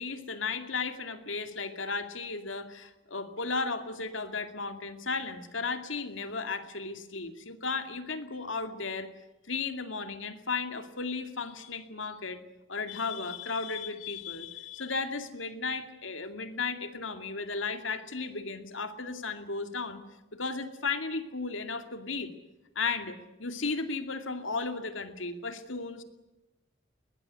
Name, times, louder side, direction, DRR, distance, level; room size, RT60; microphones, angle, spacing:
voice 1, 0.0-9.1 9.4-12.4 12.7-20.0 20.3-22.3 22.8-26.0, left 4 dB, 80° left, 8 dB, 2.4 m, -35 dB
21.5 x 20.0 x 9.8 m, 0.98 s
head